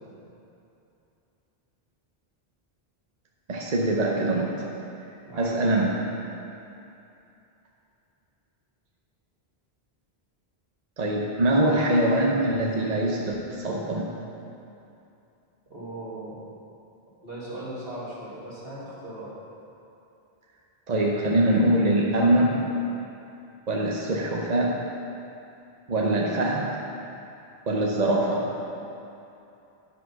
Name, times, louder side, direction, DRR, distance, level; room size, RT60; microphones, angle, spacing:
voice 1, 3.5-4.6 5.4-6.0 11.0-14.1 20.9-22.6 23.7-24.9 25.9-26.8 27.7-28.5, right 1 dB, 45° right, -2 dB, 0.8 m, -23 dB
voice 2, 5.2-5.7 15.7-16.4 17.2-19.3, right 1 dB, 65° right, -9 dB, 2.6 m, -38 dB
9.9 x 5.4 x 5.6 m, 2.8 s
omnidirectional pair, 1.0 m